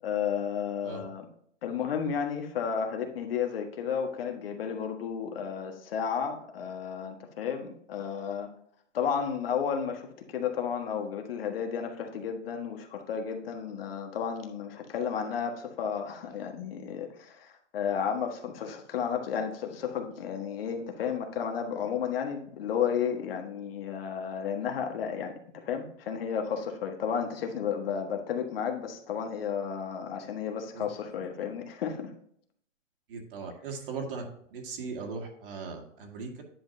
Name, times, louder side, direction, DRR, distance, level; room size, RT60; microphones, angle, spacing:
voice 1, 0.0-1.3 1.6-8.5 8.9-32.1, left 7 dB, 50° left, 4 dB, 1.5 m, -32 dB
voice 2, 33.1-34.3 34.5-36.4, right 4 dB, 45° right, 2 dB, 2.1 m, -38 dB
10.0 x 6.1 x 2.7 m, 0.66 s
hypercardioid pair, 150°, 37 cm